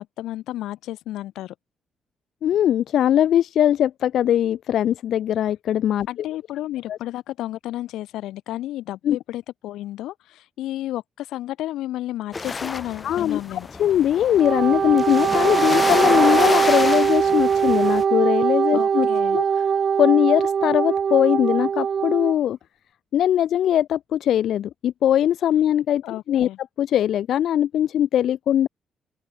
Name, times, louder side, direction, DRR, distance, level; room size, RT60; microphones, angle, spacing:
voice 1, 0.0-1.5 6.1-13.7 18.7-19.4 26.0-26.6, left 14 dB, 85° left, 6.8 m, -32 dB
voice 2, 2.4-6.1 6.9-7.0 9.0-9.2 13.0-13.4 13.8-19.1 19.3-19.6 20.0-22.6 23.1-26.5 26.8-28.7, left 11 dB, 70° left, 3.3 m, -20 dB
sound 1, 12.3-18.0, left 4 dB, 30° left, 7.8 m, -29 dB
Wind instrument woodwind instrument, 14.3-22.3, right 7 dB, 50° right, 4.7 m, -21 dB
open air
cardioid pair, 90°, 0 cm